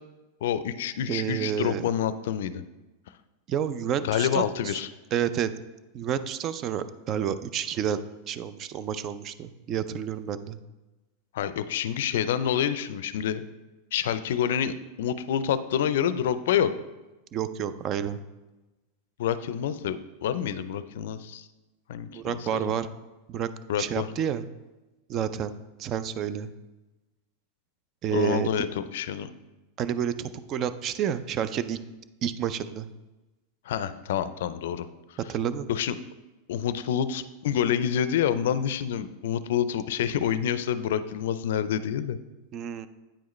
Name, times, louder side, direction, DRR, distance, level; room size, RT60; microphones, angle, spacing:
voice 1, 0.4-2.6 4.0-4.9 11.3-13.4 13.9-16.7 19.2-21.5 21.9-22.7 23.7-24.1 28.1-29.3 33.7-35.2 35.7-35.9 36.5-42.2, left 9 dB, 75° left, 14 dB, 0.4 m, -27 dB
voice 2, 1.1-1.8 3.5-4.7 5.1-5.5 5.9-8.0 8.3-10.6 17.3-18.2 22.1-22.9 23.3-23.5 23.8-24.5 25.1-25.5 25.8-26.5 28.0-28.5 29.8-31.8 32.2-32.9 35.3-35.7 42.5-42.9, right 9 dB, 35° right, 13 dB, 0.4 m, -29 dB
8.7 x 4.9 x 3.1 m, 1.1 s
supercardioid pair, 140°, 0 cm